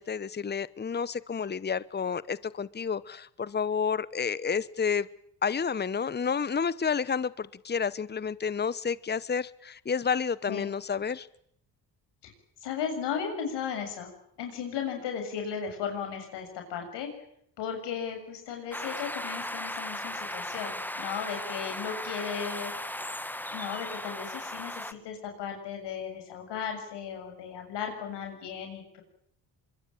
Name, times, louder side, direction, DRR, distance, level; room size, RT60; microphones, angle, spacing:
voice 1, 0.0-5.1 5.4-11.3, left 6 dB, 25° left, 19 dB, 1.0 m, -30 dB
voice 2, 12.6-14.1 14.4-17.1 17.6-23.0 23.5-29.0, left 7 dB, 90° left, 4 dB, 7.2 m, -36 dB
sound 1, 18.7-24.9, left 1 dB, 5° left, 1.7 m, -36 dB
24.5 x 23.0 x 9.0 m, 0.68 s
cardioid pair, 75°, 40 cm